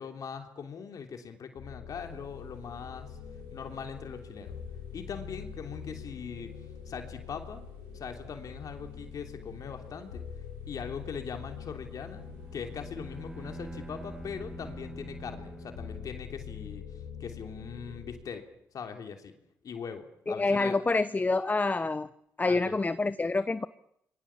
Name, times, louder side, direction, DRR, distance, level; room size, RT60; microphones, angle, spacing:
voice 1, 0.0-3.2 3.5-4.6 4.9-6.5 6.8-7.6 7.9-10.2 10.7-12.2 12.5-16.8 17.2-18.4 18.7-19.3 19.6-20.8 22.5-22.8, left 6 dB, 60° left, 5 dB, 3.2 m, -41 dB
sound 1, 1.6-18.2, left 8 dB, 75° left, 5.2 m, -44 dB
sound 2, 1.9-16.2, right 8 dB, 90° right, 3.8 m, -55 dB
Bowed string instrument, 12.0-16.8, right 2 dB, 10° right, 2.1 m, -46 dB
voice 2, 20.3-22.1 22.4-23.7, left 3 dB, 25° left, 15 dB, 0.9 m, -27 dB
27.0 x 22.0 x 7.3 m, 0.74 s
hypercardioid pair, 55°, 7 cm